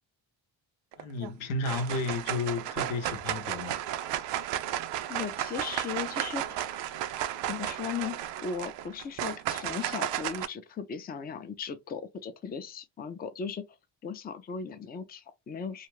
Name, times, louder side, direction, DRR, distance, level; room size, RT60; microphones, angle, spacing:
sound 1, 0.9-1.3 1.6-10.5, right 12 dB, 65° right, 0.5 m, -33 dB
voice 1, 1.0-3.8, left 3 dB, 90° left, 0.8 m, -32 dB
voice 2, 5.1-6.7 7.5-13.6 14.0-15.9, left 6 dB, 20° left, 0.4 m, -37 dB
2.3 x 2.3 x 3.0 m
supercardioid pair, 60°, 47 cm